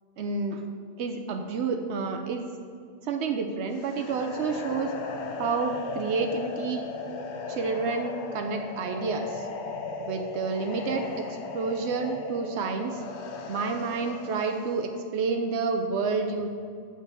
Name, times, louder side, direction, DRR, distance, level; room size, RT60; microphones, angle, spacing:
voice 1, 0.2-0.6 1.0-2.5 3.0-4.9 5.4-6.8 7.5-9.5 10.0-13.0 13.5-16.5, right 4 dB, 85° right, 5 dB, 0.9 m, -29 dB
sound 1, 3.7-14.9, left 4 dB, 90° left, 1.0 m, -37 dB
8.2 x 4.4 x 6.8 m, 2.3 s
omnidirectional pair, 1.1 m